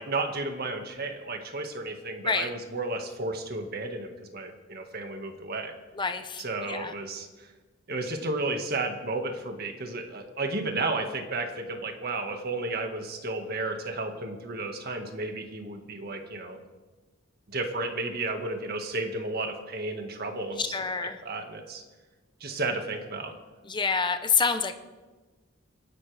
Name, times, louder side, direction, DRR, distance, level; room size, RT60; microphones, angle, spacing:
voice 1, 0.0-5.7 6.4-7.5 7.9-16.6 17.5-20.7 21.2-21.8 22.4-23.3, right 2 dB, 50° right, 4 dB, 1.8 m, -33 dB
voice 2, 5.9-6.9 20.6-21.2 23.6-24.7, left 5 dB, 25° left, 9 dB, 0.8 m, -27 dB
27.0 x 11.5 x 3.5 m, 1.3 s
head